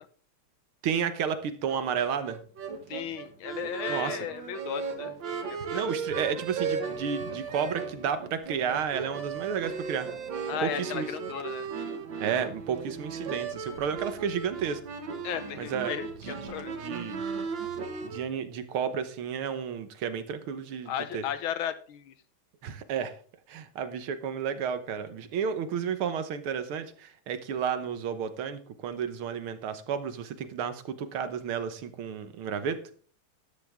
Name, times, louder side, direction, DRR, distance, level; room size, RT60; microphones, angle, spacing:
voice 1, 0.8-2.4 3.9-4.2 5.7-10.1 10.6-11.1 12.2-14.8 15.6-15.9 16.2-17.2 18.0-21.2 22.6-23.1 23.5-32.9, right 7 dB, 80° right, 11 dB, 2.0 m, -32 dB
sound 1, 1.7-18.3, right 5 dB, 65° right, 2.1 m, -36 dB
voice 2, 2.9-5.9 10.5-11.7 15.2-16.7 20.9-22.2, left 9 dB, 75° left, 12 dB, 1.7 m, -35 dB
13.0 x 10.0 x 3.6 m, 0.41 s
omnidirectional pair, 2.3 m